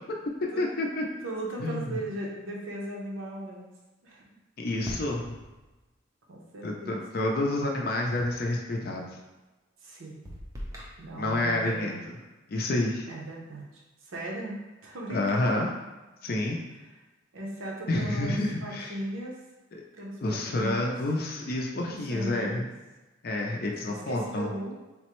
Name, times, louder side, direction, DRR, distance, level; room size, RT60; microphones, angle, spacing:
voice 1, 0.6-1.0 1.6-2.0 4.6-5.3 6.6-9.0 11.2-12.1 12.5-13.1 15.1-15.7 16.2-16.6 17.9-18.9 19.7-19.8 20.2-22.7 23.2-24.5, left 2 dB, 45° left, 0 dB, 0.4 m, -29 dB
voice 2, 1.2-3.7 4.0-4.2 6.3-7.0 9.8-10.2 11.0-12.0 13.1-14.6 14.8-15.6 17.3-19.4 20.0-21.0 21.9-22.6 23.9-24.8, right 1 dB, 80° right, -2 dB, 0.7 m, -37 dB
sound 1, 4.8-5.9 8.2-8.7 10.3-11.5, equal, 15° right, 0.4 m, -42 dB
3.4 x 2.1 x 2.9 m, 1.1 s
head